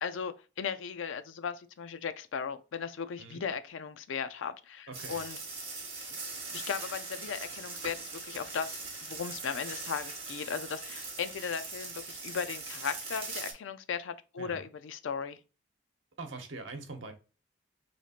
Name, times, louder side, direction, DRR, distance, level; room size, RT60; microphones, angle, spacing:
voice 1, 0.0-5.4 6.1-6.2 6.5-15.4, left 6 dB, 80° left, 0.4 m, -37 dB
sound 1, 4.9-13.5, right 3 dB, 30° right, 1.4 m, -41 dB
voice 2, 4.9-5.2 14.4-14.6 16.2-17.1, right 3 dB, 75° right, 0.9 m, -43 dB
3.0 x 2.4 x 4.2 m
head